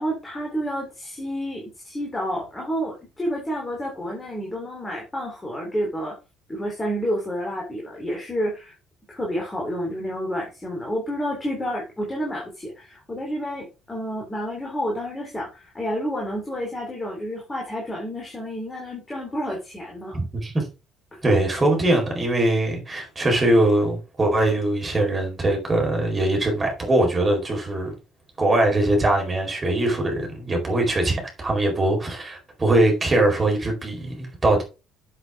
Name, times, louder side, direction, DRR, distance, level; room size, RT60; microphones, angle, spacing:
voice 1, 0.0-6.1 6.5-8.7 9.1-20.2 21.1-21.2, equal, 20° left, 3.5 m, -29 dB
voice 2, 20.1-20.7 21.2-27.9 28.4-34.6, right 1 dB, 25° right, 4.5 m, -22 dB
7.9 x 7.5 x 3.6 m
figure-of-eight pair, 55°, 0 cm